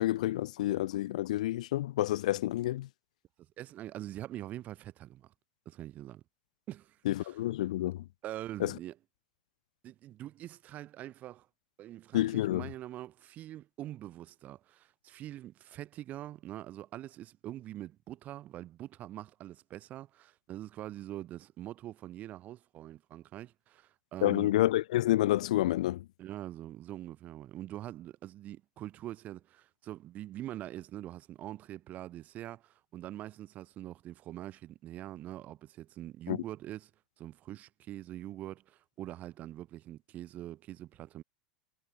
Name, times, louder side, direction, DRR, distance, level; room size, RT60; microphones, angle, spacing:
voice 1, 0.0-2.9 7.1-8.0 8.6-8.7 12.1-12.7 24.2-26.1 36.3-36.4, left 15 dB, 60° left, 0.5 m, -29 dB
voice 2, 3.6-5.3 5.7-6.2 6.7-7.3 8.2-8.9 9.8-11.5 11.8-24.5 26.2-36.9 37.2-41.2, right 13 dB, 35° right, 1.8 m, -44 dB
figure-of-eight pair, 85°, 4 cm